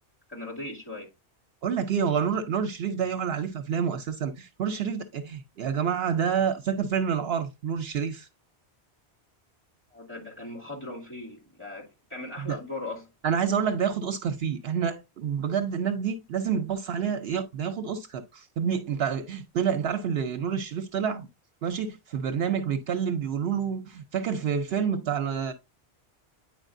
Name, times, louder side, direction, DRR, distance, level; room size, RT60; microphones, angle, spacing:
voice 1, 0.3-1.1 9.9-13.1, left 2 dB, 10° left, 2.4 m, -39 dB
voice 2, 1.6-8.3 12.4-12.6 13.2-21.3 21.6-25.5, right 7 dB, 70° right, 0.8 m, -28 dB
9.0 x 4.8 x 2.5 m
omnidirectional pair, 1.1 m